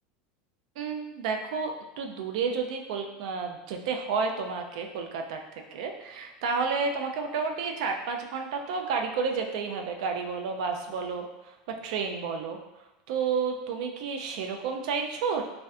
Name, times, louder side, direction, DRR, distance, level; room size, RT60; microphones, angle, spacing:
voice 1, 0.8-11.3 11.8-12.6 13.1-15.4, right 5 dB, 70° right, 4 dB, 0.3 m, -31 dB
2.5 x 2.1 x 2.4 m, 0.97 s
supercardioid pair, 165°, 4 cm